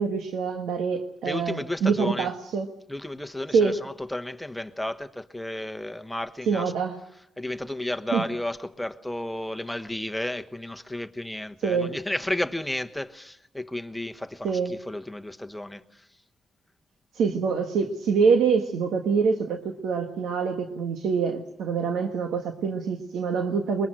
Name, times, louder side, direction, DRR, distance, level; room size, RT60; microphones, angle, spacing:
voice 1, 0.0-2.7 3.5-3.7 6.5-7.0 8.1-8.3 11.6-11.9 14.4-14.7 17.1-23.9, right 5 dB, 80° right, 1.5 m, -25 dB
voice 2, 1.2-2.3 2.9-6.7 7.0-16.1, left 1 dB, 5° left, 1.2 m, -33 dB
22.5 x 22.0 x 7.7 m
cardioid pair, 95°, 0 cm